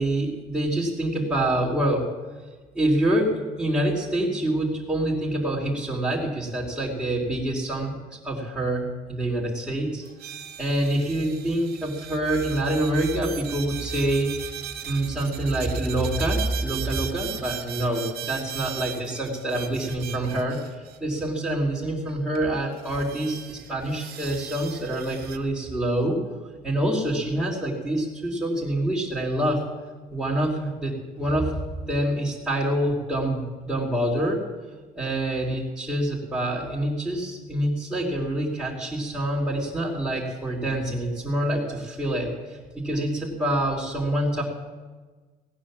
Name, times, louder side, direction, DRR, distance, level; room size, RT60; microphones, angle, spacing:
voice 1, 0.0-2.1 2.7-7.9 8.2-10.0 10.6-14.5 14.8-26.2 26.6-29.6 30.1-31.5 31.9-34.4 34.9-44.4, right 1 dB, 5° right, -7 dB, 3.1 m, -26 dB
sound 1, 10.0-21.2 22.1-22.2 22.3-22.4 22.8-25.4, right 11 dB, 65° right, 1.0 m, -38 dB
17.0 x 9.3 x 7.3 m, 1.3 s
cardioid pair, 110°, 17 cm